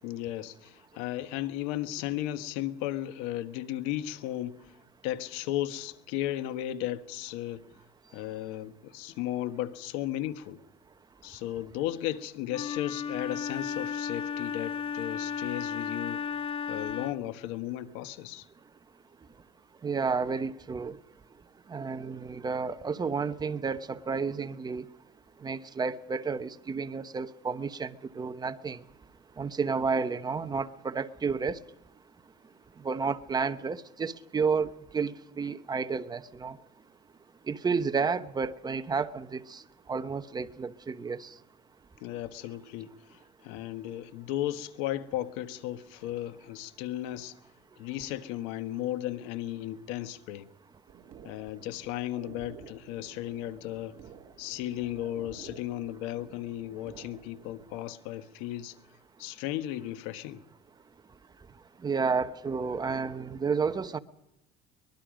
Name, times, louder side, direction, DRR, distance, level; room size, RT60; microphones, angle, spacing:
voice 1, 0.0-4.7 5.0-7.6 8.1-10.6 11.2-16.2 16.7-18.5 42.0-47.4 47.8-50.5 51.2-54.0 54.4-58.8 59.2-60.4, left 13 dB, 85° left, 1.4 m, -35 dB
Wind instrument woodwind instrument, 12.5-17.3, left 7 dB, 30° left, 0.7 m, -34 dB
voice 2, 19.8-20.9 21.7-24.8 25.4-28.8 29.4-31.6 32.8-36.6 37.5-39.6 39.9-41.3 61.8-64.0, right 5 dB, 20° right, 1.0 m, -31 dB
sound 1, 50.9-57.9, right 7 dB, 40° right, 3.1 m, -52 dB
24.0 x 21.0 x 5.1 m
cardioid pair, 130°, 19 cm